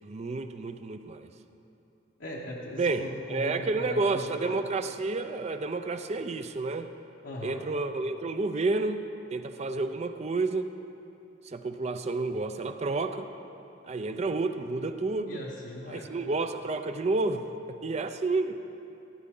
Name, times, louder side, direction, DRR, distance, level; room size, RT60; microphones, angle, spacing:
voice 1, 0.0-1.3 2.8-6.9 7.4-9.0 9.3-10.7 11.4-13.3 13.8-15.4 15.9-18.6, right 3 dB, 35° right, 9 dB, 0.5 m, -30 dB
voice 2, 2.2-4.8 7.2-7.6 15.3-16.1, left 1 dB, 85° left, -4 dB, 1.1 m, -39 dB
16.0 x 10.0 x 3.8 m, 2.9 s
head